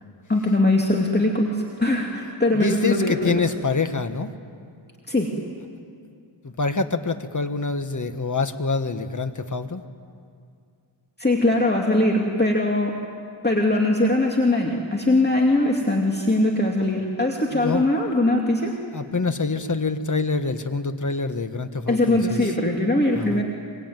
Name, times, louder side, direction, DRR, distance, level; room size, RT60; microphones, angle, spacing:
voice 1, 0.3-3.4 5.1-5.3 11.2-13.0 13.4-18.7 21.9-23.4, left 1 dB, 20° left, 0 dB, 2.5 m, -21 dB
voice 2, 2.5-4.3 6.4-9.8 17.5-17.8 18.9-22.5 23.1-23.4, left 4 dB, 40° left, 9 dB, 1.6 m, -26 dB
24.5 x 23.5 x 9.3 m, 2.4 s
wide cardioid pair, 75°, 48 cm